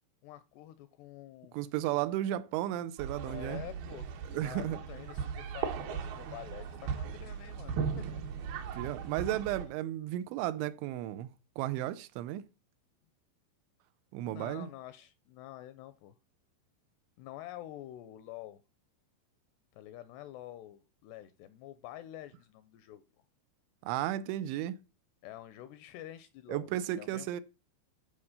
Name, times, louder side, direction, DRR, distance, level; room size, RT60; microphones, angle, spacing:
voice 1, 0.2-1.6 3.2-8.2 14.2-16.2 17.2-18.6 19.7-23.0 25.2-27.3, left 13 dB, 80° left, 2.5 m, -48 dB
voice 2, 1.5-3.6 4.3-4.8 8.7-11.3 11.6-12.4 14.1-14.7 23.8-24.8 26.5-27.4, right 13 dB, 85° right, 3.0 m, -34 dB
sound 1, 3.0-9.6, right 6 dB, 70° right, 2.7 m, -38 dB
12.0 x 4.4 x 6.5 m
omnidirectional pair, 5.3 m